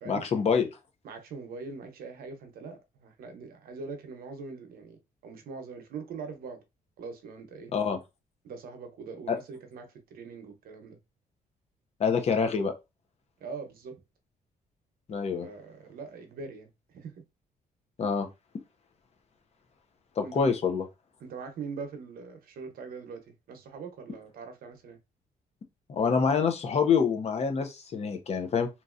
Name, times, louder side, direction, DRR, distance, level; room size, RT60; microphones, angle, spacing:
voice 1, 0.1-0.7 7.7-8.0 9.3-9.4 12.0-12.7 15.1-15.5 18.0-18.3 20.2-20.8 25.9-28.7, left 6 dB, 45° left, 0.7 m, -26 dB
voice 2, 1.0-6.6 7.0-7.7 8.4-11.0 13.4-14.0 15.4-16.7 16.9-17.1 20.2-20.5 21.2-25.0, right 4 dB, 75° right, 0.8 m, -42 dB
3.0 x 2.7 x 2.4 m
cardioid pair, 120°, 15 cm